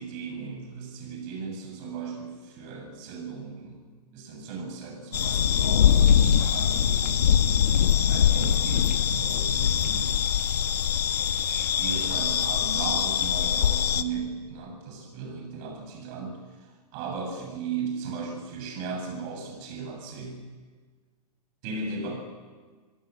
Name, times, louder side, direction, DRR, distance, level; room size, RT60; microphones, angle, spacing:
voice 1, 0.0-3.8 4.1-7.3 8.0-10.1 11.4-16.4 16.9-20.4 21.6-22.1, right 5 dB, 40° right, 4 dB, 7.9 m, -36 dB
sound 1, 5.1-14.0, left 9 dB, 75° left, 1.4 m, -23 dB
28.0 x 17.0 x 8.3 m, 1.5 s
hypercardioid pair, 125°, 21 cm